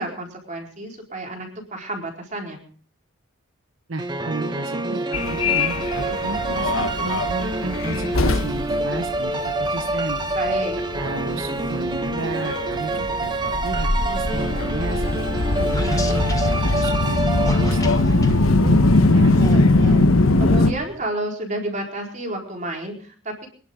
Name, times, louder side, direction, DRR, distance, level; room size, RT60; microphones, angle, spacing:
voice 1, 0.0-2.6 10.3-10.8 20.4-23.5, right 1 dB, 35° right, 1 dB, 4.3 m, -30 dB
voice 2, 3.9-10.2 11.0-16.3 16.6-20.1, right 3 dB, 70° right, 7 dB, 1.0 m, -33 dB
sound 1, 4.0-18.3, right 2 dB, 20° right, 1.0 m, -27 dB
Subway metro underground, 5.1-20.7, left 2 dB, 75° left, 1.2 m, -21 dB
sound 2, 14.7-21.1, left 1 dB, 15° left, 1.2 m, -33 dB
24.5 x 11.0 x 3.8 m, 0.43 s
head